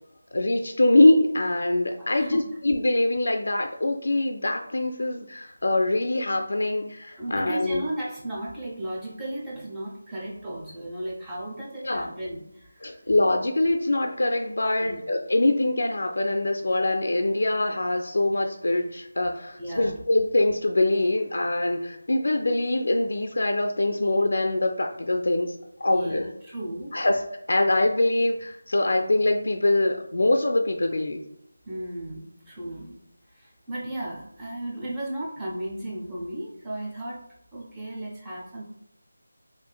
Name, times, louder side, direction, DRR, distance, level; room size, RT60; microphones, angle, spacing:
voice 1, 0.3-7.8 11.8-12.1 12.8-25.5 25.8-26.2 26.9-27.2 27.5-31.2, left 2 dB, 65° left, 4 dB, 0.3 m, -23 dB
voice 2, 2.0-2.4 7.2-13.0 14.8-15.0 19.6-19.9 25.9-26.9 31.7-33.0 33.3-37.2 37.5-38.6, right 1 dB, 5° right, -6 dB, 0.4 m, -35 dB
3.7 x 2.4 x 2.2 m, 0.77 s
figure-of-eight pair, 175°, 0 cm